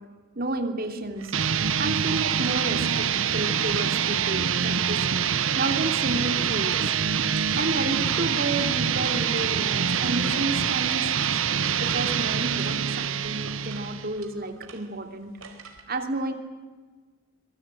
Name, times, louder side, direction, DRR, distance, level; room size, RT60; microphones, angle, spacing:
voice 1, 0.4-1.3 1.8-3.1 3.3-5.0 5.6-6.9 7.4-11.3 11.8-15.3 15.9-16.3, right 2 dB, 45° right, 6 dB, 2.9 m, -31 dB
sound 1, 1.1-15.8, right 5 dB, 85° right, 4.2 m, -46 dB
sound 2, 1.3-14.2, right 7 dB, 70° right, 1.0 m, -25 dB
25.5 x 22.5 x 9.1 m, 1.4 s
head